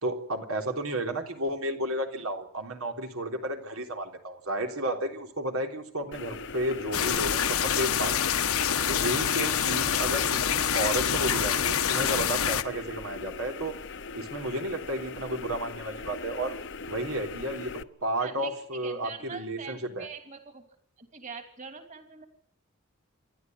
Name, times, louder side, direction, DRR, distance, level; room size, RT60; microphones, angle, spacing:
voice 1, 0.0-8.3 8.9-13.7 14.1-16.5 16.9-17.7 18.0-20.1, right 1 dB, 85° right, 4 dB, 3.6 m, -32 dB
sound 1, 6.1-17.8, left 4 dB, 55° left, 0.9 m, -40 dB
sound 2, 6.9-12.6, left 8 dB, 90° left, 1.3 m, -26 dB
voice 2, 18.2-18.5 18.8-20.6 21.0-22.3, right 5 dB, 35° right, 6 dB, 3.0 m, -43 dB
28.5 x 12.0 x 9.4 m, 0.65 s
head